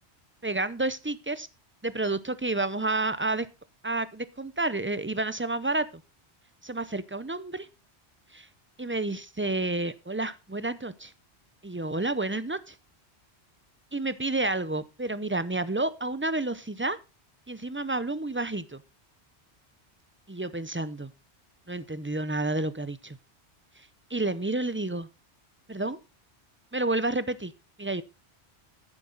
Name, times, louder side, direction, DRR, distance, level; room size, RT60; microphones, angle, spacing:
voice 1, 0.4-1.5 1.8-3.5 3.8-5.9 6.6-7.7 8.3-8.5 8.8-11.1 11.6-12.7 13.9-17.0 17.5-18.8 20.3-21.1 21.7-23.2 24.1-25.1 25.7-26.0 26.7-27.5 27.8-28.0, right 2 dB, 15° right, 15 dB, 0.5 m, -30 dB
11.0 x 10.0 x 4.0 m, 0.28 s
omnidirectional pair, 1.1 m